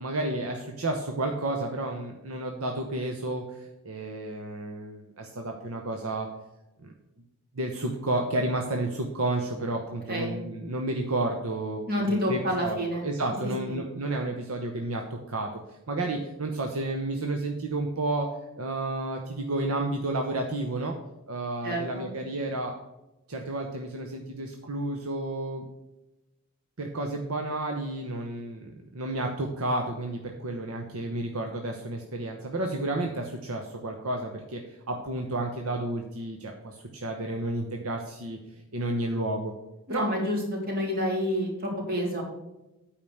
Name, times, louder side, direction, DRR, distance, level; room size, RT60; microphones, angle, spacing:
voice 1, 0.0-6.3 6.8-6.9 7.5-18.3 18.6-20.9 21.3-22.7 23.3-25.6 26.8-38.4 38.7-39.5 39.9-40.1, right 2 dB, 75° right, 3 dB, 1.0 m, -31 dB
voice 2, 11.9-13.1 13.7-13.8 21.6-22.1 39.9-40.4 40.7-42.2, equal, 45° right, -1 dB, 3.1 m, -28 dB
8.8 x 4.9 x 6.5 m, 0.98 s
head